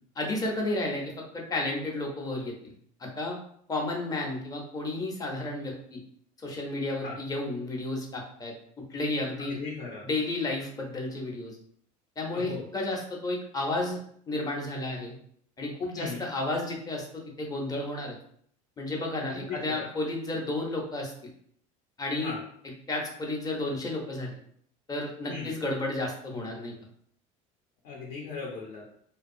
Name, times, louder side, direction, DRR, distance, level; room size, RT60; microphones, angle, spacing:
voice 1, 0.2-2.7 3.0-3.4 3.7-6.0 6.4-8.5 8.9-9.6 10.0-11.6 12.2-14.0 14.3-15.1 15.6-18.2 18.8-21.3 22.0-22.3 22.9-24.3 24.9-26.7, left 2 dB, 20° left, 0 dB, 0.6 m, -32 dB
voice 2, 9.4-10.0 12.3-12.6 16.0-16.2 19.3-19.9 22.2-22.4 25.3-25.5 27.8-28.8, left 5 dB, 65° left, -2 dB, 0.7 m, -38 dB
2.6 x 2.3 x 2.6 m, 0.63 s
cardioid pair, 125°, 17 cm